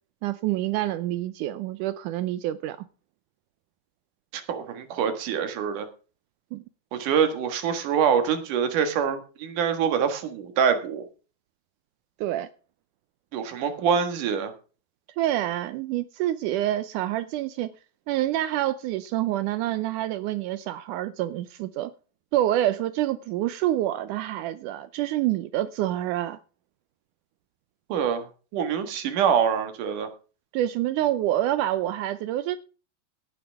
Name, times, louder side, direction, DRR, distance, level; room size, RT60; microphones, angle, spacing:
voice 1, 0.2-2.8 6.5-6.6 12.2-12.5 15.2-17.7 18.1-21.9 22.3-26.4 30.5-32.6, right 13 dB, 85° right, 1.8 m, -27 dB
voice 2, 4.3-5.9 6.9-11.1 13.3-14.5 27.9-28.3 28.5-30.1, right 7 dB, 60° right, 2.9 m, -25 dB
17.5 x 9.8 x 3.5 m
omnidirectional pair, 4.4 m